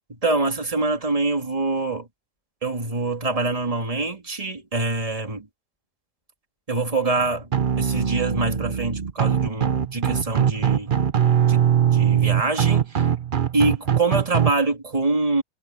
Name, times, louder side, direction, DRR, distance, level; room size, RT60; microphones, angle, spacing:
voice 1, 0.1-2.1 2.6-5.5 6.7-11.0 11.5-13.1 13.5-15.4, right 3 dB, 20° right, 2.3 m, -25 dB
sound 1, 7.5-14.5, right 9 dB, 45° right, 0.6 m, -21 dB
omnidirectional pair, 1.9 m